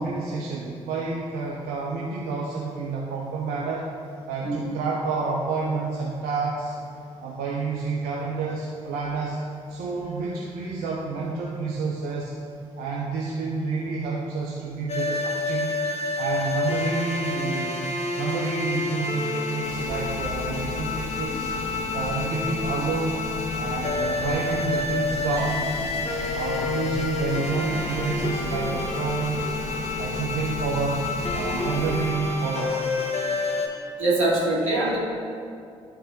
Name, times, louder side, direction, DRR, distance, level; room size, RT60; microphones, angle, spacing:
voice 1, 0.0-3.9 4.3-6.7 7.2-9.4 9.7-12.3 12.8-15.7 16.2-17.8 18.2-21.5 21.9-23.2 23.6-25.7 26.3-29.5 30.0-31.0 31.3-32.8, right 4 dB, 65° right, -3 dB, 0.8 m, -29 dB
sound 1, 14.9-33.7, left 3 dB, 40° left, 1.3 m, -29 dB
sound 2, 19.6-32.1, left 2 dB, 70° left, 0.8 m, -35 dB
voice 2, 34.0-35.0, right 2 dB, 85° right, -7 dB, 1.8 m, -23 dB
12.0 x 4.1 x 3.8 m, 2.4 s
hypercardioid pair, 45°, 16 cm